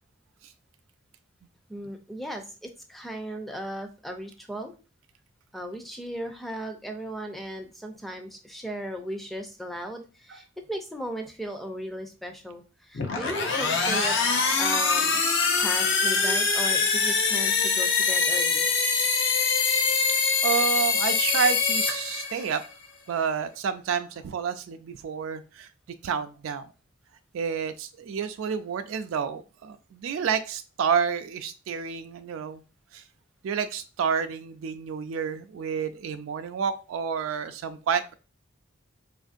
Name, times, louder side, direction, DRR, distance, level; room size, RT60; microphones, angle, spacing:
voice 1, 1.7-4.7 5.5-14.2 14.6-15.2 15.6-18.7, equal, ahead, 4 dB, 0.4 m, -36 dB
sound 1, 12.9-22.7, left 4 dB, 60° left, 0.6 m, -24 dB
voice 2, 20.4-22.6 23.1-25.7 26.0-26.7 27.3-32.6 32.9-33.0 33.4-38.1, right 6 dB, 75° right, 9 dB, 0.3 m, -29 dB
4.4 x 2.6 x 2.4 m, 0.33 s
head